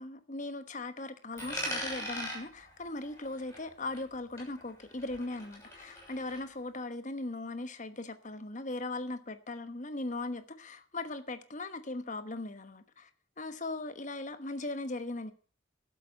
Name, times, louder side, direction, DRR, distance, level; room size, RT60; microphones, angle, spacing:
voice 1, 0.0-13.1 13.4-15.3, left 2 dB, 40° left, 1.2 m, -39 dB
Coin (dropping), 1.4-4.1 4.4-6.4, equal, 15° left, 6.7 m, -41 dB
12.5 x 7.7 x 8.7 m
head